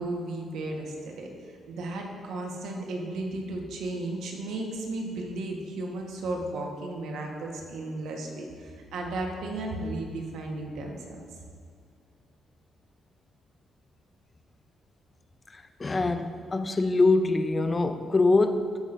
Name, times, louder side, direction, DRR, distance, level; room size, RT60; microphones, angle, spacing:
voice 1, 0.0-1.3 1.7-11.2, right 2 dB, 80° right, 1 dB, 1.3 m, -34 dB
voice 2, 15.5-18.8, left 3 dB, 25° left, 8 dB, 0.6 m, -24 dB
13.5 x 5.9 x 2.6 m, 2.2 s
cardioid pair, 90°, 0 cm